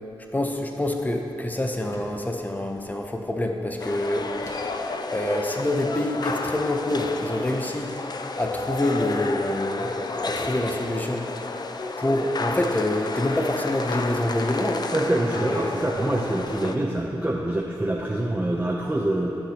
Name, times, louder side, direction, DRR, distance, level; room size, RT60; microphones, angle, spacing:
voice 1, 0.3-4.3 5.1-7.9 8.4-11.3 12.0-14.9 15.5-15.7, left 1 dB, 20° left, 3 dB, 0.8 m, -26 dB
sound 1, 1.9-2.3 4.4-4.9 6.2-6.3 6.9-7.2, left 1 dB, 35° left, 1.7 m, -46 dB
sound 2, 3.8-16.8, left 3 dB, 50° left, 0.5 m, -31 dB
voice 2, 14.9-19.4, right 1 dB, 20° right, -2 dB, 0.7 m, -25 dB
13.0 x 6.0 x 2.9 m, 2.8 s
cardioid pair, 45°, 9 cm